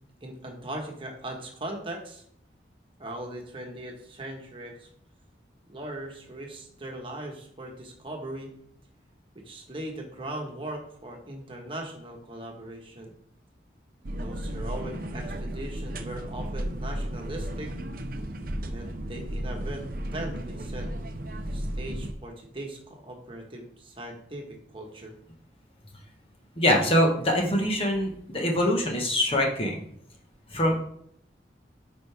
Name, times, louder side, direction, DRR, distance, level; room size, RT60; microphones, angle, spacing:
voice 1, 0.2-2.2 3.0-4.9 5.7-8.5 9.4-13.1 14.2-17.7 18.7-19.8 20.1-20.9 21.5-25.1, right 1 dB, 30° right, 1 dB, 1.4 m, -39 dB
sound 1, 14.0-22.1, right 1 dB, 50° right, 0.7 m, -34 dB
voice 2, 26.6-29.8 30.5-30.8, left 1 dB, 30° left, 0 dB, 1.4 m, -24 dB
10.5 x 5.5 x 3.5 m, 0.68 s
head